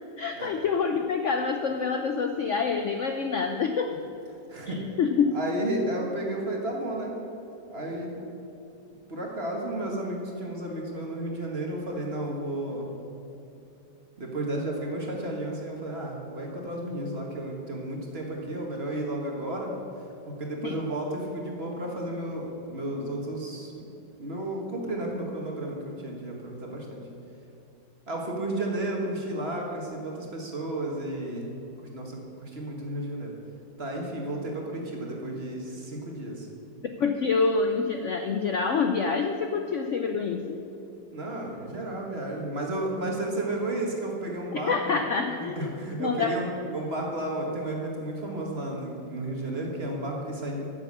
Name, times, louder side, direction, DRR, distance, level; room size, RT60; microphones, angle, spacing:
voice 1, 0.2-3.9 4.7-5.4 20.6-20.8 37.0-40.6 44.5-45.7 46.0-46.4, left 5 dB, 70° left, 5 dB, 0.7 m, -27 dB
voice 2, 4.5-4.8 5.3-7.2 7.7-8.2 9.1-12.9 14.2-19.7 20.3-23.7 24.2-27.0 28.1-31.5 31.9-33.3 33.8-36.5 41.1-45.0 45.4-50.7, right 1 dB, 35° right, 0 dB, 1.8 m, -32 dB
10.5 x 7.4 x 8.4 m, 2.9 s
omnidirectional pair, 2.0 m